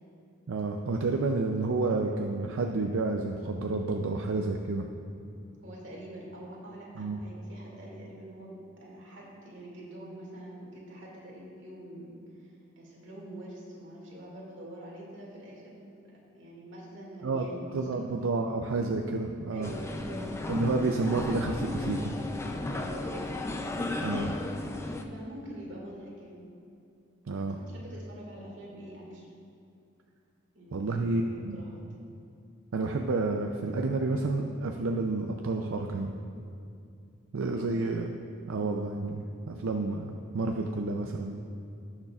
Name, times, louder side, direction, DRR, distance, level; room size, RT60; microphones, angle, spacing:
voice 1, 0.5-4.9 7.0-7.2 17.2-17.4 17.7-19.7 20.5-22.2 24.0-24.3 27.3-27.6 30.7-31.6 32.7-36.1 37.3-38.1 38.4-41.4, right 3 dB, 85° right, 3 dB, 0.5 m, -30 dB
voice 2, 5.6-15.9 16.3-18.1 18.4-18.5 18.7-18.9 19.5-20.4 22.7-23.4 24.0-24.4 25.1-26.5 27.5-29.3 30.5-31.8 37.5-37.7, right 1 dB, 60° right, -4 dB, 2.2 m, -45 dB
sound 1, 19.6-25.0, left 2 dB, 15° left, 0.4 m, -34 dB
17.0 x 6.6 x 2.4 m, 2.5 s
head